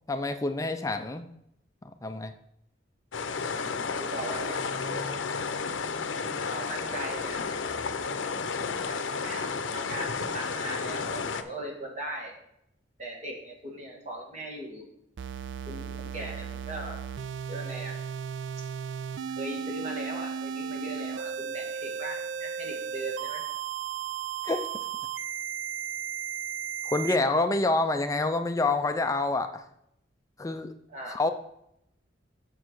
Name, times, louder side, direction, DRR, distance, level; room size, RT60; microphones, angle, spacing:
voice 1, 0.1-1.3 2.0-2.3 24.4-24.6 26.8-29.7 30.4-30.7 31.1-31.3, left 2 dB, 15° left, 8 dB, 0.4 m, -27 dB
sound 1, 3.1-11.4, left 5 dB, 85° left, 0.6 m, -32 dB
voice 2, 4.0-5.1 6.5-7.4 8.9-9.5 9.7-12.3 13.0-14.8 15.7-17.0 17.5-17.9 19.4-23.4 30.9-31.2, right 1 dB, 35° right, -1 dB, 2.0 m, -39 dB
sound 2, 15.2-27.2, right 8 dB, 75° right, 0.3 m, -35 dB
6.9 x 6.6 x 4.6 m, 0.77 s
head